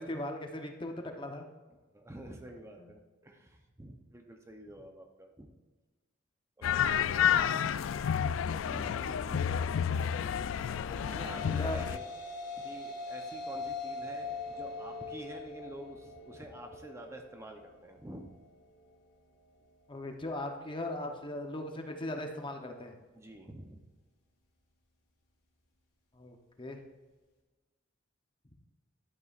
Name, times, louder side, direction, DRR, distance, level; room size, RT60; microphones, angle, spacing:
voice 1, 0.0-1.5 11.6-11.8 19.9-22.9 26.2-26.8, left 1 dB, 25° left, 4 dB, 0.8 m, -38 dB
voice 2, 1.7-5.5 6.6-7.8 8.6-9.6 11.1-12.0 12.6-18.3 23.1-23.9, right 1 dB, 15° right, 3 dB, 0.7 m, -48 dB
sound 1, 6.6-12.0, left 8 dB, 85° left, 0.3 m, -30 dB
sound 2, 10.6-19.0, left 3 dB, 60° left, 2.5 m, -42 dB
11.0 x 8.3 x 2.4 m, 1.2 s
head